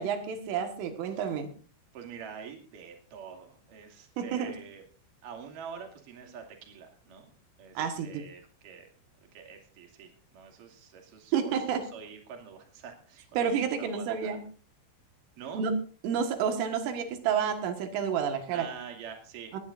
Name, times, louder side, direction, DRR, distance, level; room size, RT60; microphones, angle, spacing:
voice 1, 0.0-1.5 4.2-4.5 7.8-8.2 11.3-11.8 13.4-14.4 15.5-15.7 16.0-18.7 19.5-19.6, right 7 dB, 85° right, 6 dB, 4.2 m, -30 dB
voice 2, 1.9-4.8 5.2-7.3 7.6-8.9 9.3-14.4 15.4-15.6 18.5-19.5, right 6 dB, 50° right, 3 dB, 3.7 m, -46 dB
18.5 x 18.5 x 2.6 m, 0.38 s
omnidirectional pair, 5.5 m